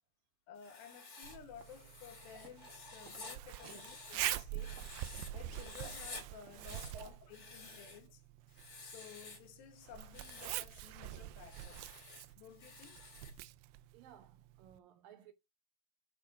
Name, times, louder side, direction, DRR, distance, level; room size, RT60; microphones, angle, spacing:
voice 1, 0.5-4.8 5.3-8.2 8.8-11.8 12.4-13.0, left 8 dB, 70° left, 2.9 m, -55 dB
Writing, 0.6-5.3 5.5-6.2 6.5-8.1 8.5-9.5 10.0-10.7 11.4-13.4, left 3 dB, 30° left, 2.1 m, -51 dB
Zipper (clothing), 1.2-14.8, right 15 dB, 85° right, 2.8 m, -46 dB
sound 1, 2.4-2.7 3.0-7.4, right 5 dB, 55° right, 1.7 m, -61 dB
voice 2, 13.9-15.3, right 8 dB, 70° right, 2.3 m, -57 dB
8.7 x 4.8 x 4.7 m
omnidirectional pair, 4.8 m